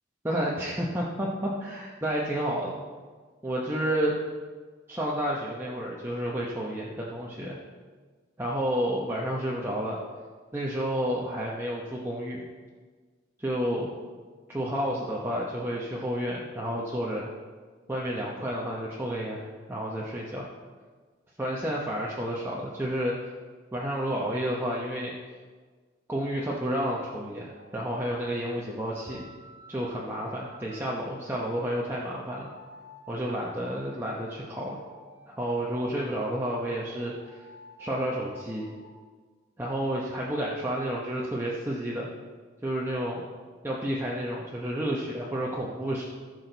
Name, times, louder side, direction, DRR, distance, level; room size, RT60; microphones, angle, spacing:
voice 1, 0.2-2.7 3.4-4.1 4.9-7.6 8.4-10.0 10.5-12.4 13.4-13.9 14.5-17.3 17.9-19.4 19.7-20.4 21.4-23.2 23.7-25.1 26.1-29.3 29.7-32.5 33.1-34.8 35.3-37.4 37.8-38.7 39.6-42.1 42.6-43.3 43.6-46.0, equal, 10° right, -5 dB, 0.9 m, -30 dB
sound 1, 27.5-33.8 34.4-38.9, equal, 55° left, 3.0 m, -52 dB
15.0 x 6.5 x 4.0 m, 1.5 s
head